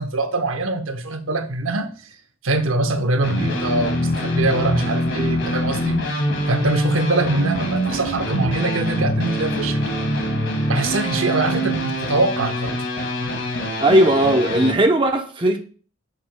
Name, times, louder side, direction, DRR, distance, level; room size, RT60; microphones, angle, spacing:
voice 1, 0.0-1.9 2.4-6.0 6.5-9.8 10.7-12.8, right 2 dB, 85° right, 0.8 m, -23 dB
sound 1, 3.2-14.7, equal, 65° left, 1.8 m, -24 dB
voice 2, 13.8-15.6, right 1 dB, 25° right, 0.7 m, -17 dB
9.2 x 6.6 x 2.2 m
head